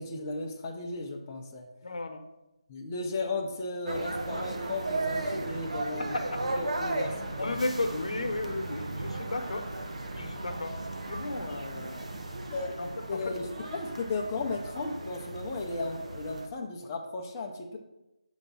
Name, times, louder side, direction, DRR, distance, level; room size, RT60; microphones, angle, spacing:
voice 1, 0.0-1.7 2.7-7.6 12.5-12.7 13.1-17.8, left 3 dB, 15° left, 1 dB, 0.6 m, -35 dB
voice 2, 1.8-2.2 6.1-6.4 7.0-9.7 10.1-10.7 11.1-12.1 12.8-13.7, left 2 dB, 75° left, 6 dB, 0.9 m, -34 dB
sound 1, 3.9-16.5, right 2 dB, 75° right, 1.0 m, -36 dB
7.1 x 3.4 x 5.4 m, 0.94 s
figure-of-eight pair, 170°, 4 cm